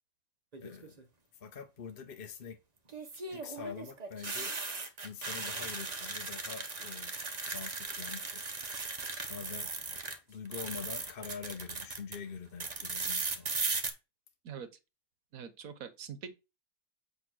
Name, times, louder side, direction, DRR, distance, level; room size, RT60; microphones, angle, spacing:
sound 1, 0.5-1.0 2.9-10.2 10.4-12.2 12.6-13.9, right 3 dB, 30° right, 0.9 m, -37 dB
voice 1, 0.6-1.0 1.4-2.6 3.1-4.5 5.0-7.1 7.4-8.4 9.0-9.7 10.3-13.6, left 6 dB, 45° left, 0.8 m, -45 dB
voice 2, 15.3-16.3, right 7 dB, 60° right, 1.4 m, -43 dB
8.2 x 3.2 x 6.2 m
omnidirectional pair, 1.7 m